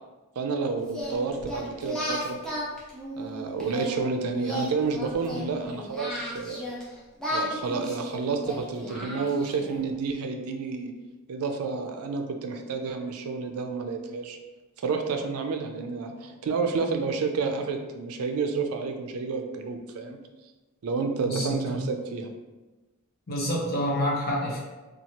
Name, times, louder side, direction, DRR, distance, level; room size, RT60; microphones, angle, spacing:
voice 1, 0.4-2.4 3.2-6.7 7.3-10.9 11.3-14.4 14.8-20.3 20.8-22.3, right 4 dB, 75° right, 5 dB, 0.4 m, -30 dB
Singing, 0.9-3.9 4.3-6.8 7.2-9.8, equal, ahead, 0.6 m, -34 dB
voice 2, 21.2-21.8 23.3-24.6, equal, 45° left, -3 dB, 0.7 m, -28 dB
2.9 x 2.3 x 2.8 m, 1.2 s
head